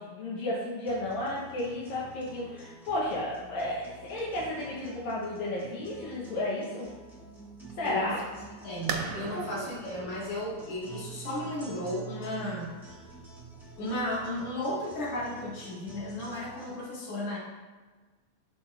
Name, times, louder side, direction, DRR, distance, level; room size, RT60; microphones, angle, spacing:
voice 1, 0.0-6.9 7.8-8.2 9.3-9.5, left 1 dB, 75° left, -6 dB, 2.3 m, -33 dB
sound 1, 0.8-16.8, right 4 dB, ahead, 1.1 m, -48 dB
voice 2, 7.8-8.2 8.6-12.7 13.8-17.4, left 1 dB, 55° left, -7 dB, 2.8 m, -34 dB
sound 2, 8.9-14.4, right 6 dB, 75° right, 1.5 m, -41 dB
12.0 x 4.1 x 2.5 m, 1.4 s
omnidirectional pair, 3.3 m